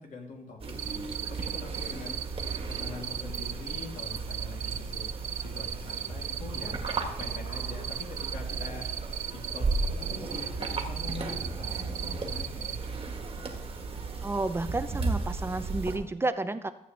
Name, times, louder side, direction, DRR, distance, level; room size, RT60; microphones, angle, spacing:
voice 1, 0.0-2.2 2.7-5.1 5.3-6.8 7.2-8.9 9.3-12.8, left 3 dB, 60° left, -1 dB, 3.0 m, -43 dB
sound 1, 0.6-16.0, right 3 dB, 40° right, 1.6 m, -35 dB
Cricket, 0.8-12.8, right 10 dB, 60° right, 0.5 m, -36 dB
voice 2, 14.2-16.7, right 2 dB, 15° right, 10 dB, 0.7 m, -31 dB
14.5 x 8.5 x 3.4 m, 0.84 s
cardioid pair, 105°, 15 cm